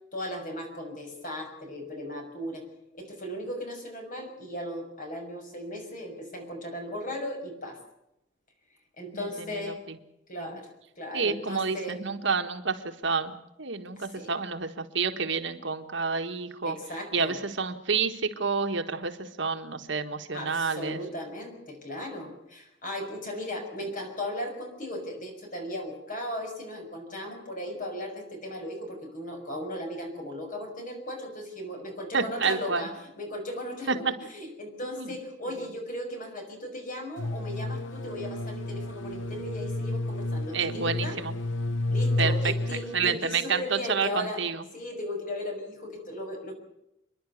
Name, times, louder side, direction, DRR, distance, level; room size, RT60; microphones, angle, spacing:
voice 1, 0.1-2.6 2.9-7.8 9.0-9.8 10.3-10.7 11.0-12.0 14.0-14.3 16.6-17.4 20.3-34.0 34.3-41.2 41.9-44.4 44.7-46.5, left 1 dB, 45° left, 4 dB, 6.4 m, -37 dB
voice 2, 9.1-10.0 10.4-10.5 11.1-16.8 17.1-21.0 32.1-32.9 33.9-34.0 34.9-35.1 40.5-41.3 42.2-42.3 42.9-44.6, right 5 dB, 70° right, 7 dB, 1.7 m, -29 dB
sound 1, 37.2-43.2, left 2 dB, 75° left, 0.9 m, -31 dB
28.5 x 11.0 x 9.5 m, 0.83 s
head